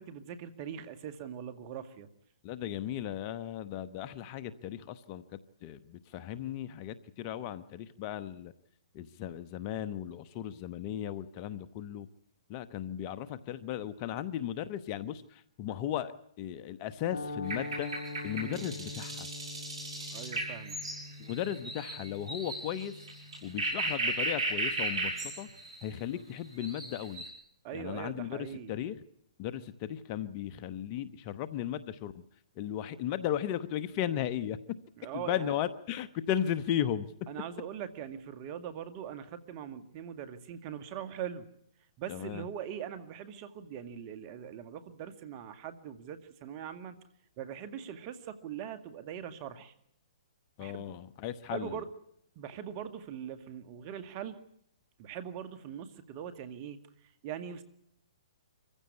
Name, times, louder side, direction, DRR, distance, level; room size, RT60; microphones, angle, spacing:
voice 1, 0.0-2.1 18.4-18.7 20.1-20.8 27.6-28.7 35.0-35.6 37.3-41.5 42.0-47.0 47.4-49.7 50.6-50.9 51.5-51.9 52.4-54.4 55.0-56.8 57.2-57.6, right 9 dB, 40° right, 11 dB, 1.9 m, -41 dB
voice 2, 2.4-5.2 5.6-8.5 8.9-12.1 12.5-18.0 18.2-19.3 21.2-23.0 23.4-25.5 25.8-27.2 27.7-29.0 29.4-32.2 32.6-34.6 35.1-37.1 42.1-42.5 50.6-51.8, left 10 dB, 40° left, 14 dB, 1.1 m, -36 dB
sound 1, 17.1-25.5, left 2 dB, 75° left, 4.3 m, -45 dB
sound 2, 17.5-25.8 26.4-27.3, right 2 dB, 60° right, 6.8 m, -36 dB
25.0 x 15.5 x 9.6 m, 0.73 s
hypercardioid pair, 130°, 3 cm